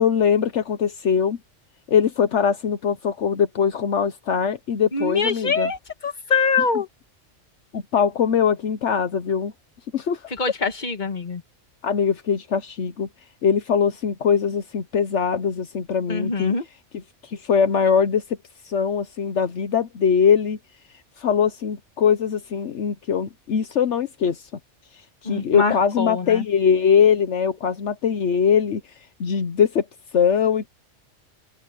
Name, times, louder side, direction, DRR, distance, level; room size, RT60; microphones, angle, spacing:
voice 1, 0.0-1.4 1.9-5.7 7.7-9.5 9.9-10.3 11.8-13.1 13.4-16.5 17.2-18.2 18.6-20.6 21.2-24.5 25.2-28.8 29.2-29.9 30.1-30.7, left 7 dB, 75° left, 1.2 m, -21 dB
voice 2, 4.9-6.9 10.3-11.4 16.1-16.7 25.2-26.5, left 4 dB, 40° left, 1.8 m, -24 dB
open air
omnidirectional pair, 1.2 m